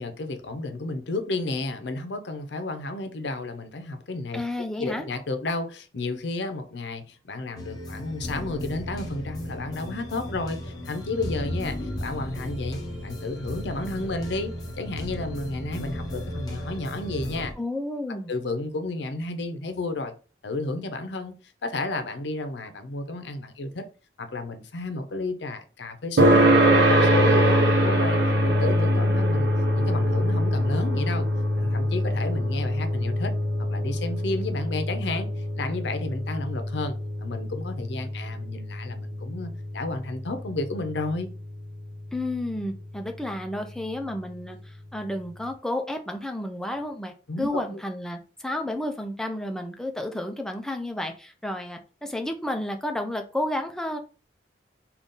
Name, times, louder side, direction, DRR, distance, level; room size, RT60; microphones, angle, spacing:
voice 1, 0.0-4.4 4.8-17.5 18.1-20.1 20.4-21.3 21.6-23.8 24.2-28.2 28.4-29.5 29.8-31.3 31.6-33.3 33.7-35.3 35.6-41.3 47.3-47.8, left 2 dB, 75° left, 0.6 m, -32 dB
voice 2, 4.3-5.0 17.6-18.3 42.1-54.0, left 1 dB, 5° left, 0.4 m, -31 dB
sound 1, 7.6-17.5, left 1 dB, 20° left, 0.7 m, -35 dB
sound 2, 26.2-41.1, equal, 80° right, 0.9 m, -23 dB
3.9 x 2.4 x 3.7 m
head